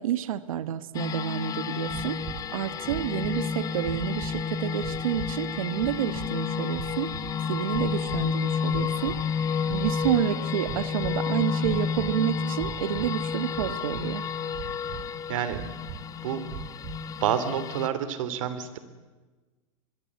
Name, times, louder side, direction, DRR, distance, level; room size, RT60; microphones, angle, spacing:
voice 1, 0.0-2.2 2.5-7.1 7.5-9.2 9.7-14.3, right 11 dB, 85° right, 14 dB, 1.4 m, -29 dB
sound 1, 0.9-17.9, left 6 dB, 20° left, 1.2 m, -31 dB
sound 2, 1.9-2.5 2.8-3.4 3.8-4.4 4.8-5.4 5.7-6.3 6.7-7.4 7.7-8.3 8.6-9.3 9.6-10.2 10.6-11.2 11.6-12.2 12.6-13.1 13.5-14.2 14.5-15.1 15.5-16.0 16.5-17.0, right 10 dB, 50° right, 3.3 m, -40 dB
voice 2, 15.3-15.6 16.2-16.4 17.2-18.8, right 9 dB, 70° right, 13 dB, 3.3 m, -28 dB
25.0 x 22.5 x 8.4 m, 1.3 s
supercardioid pair, 150°, 17 cm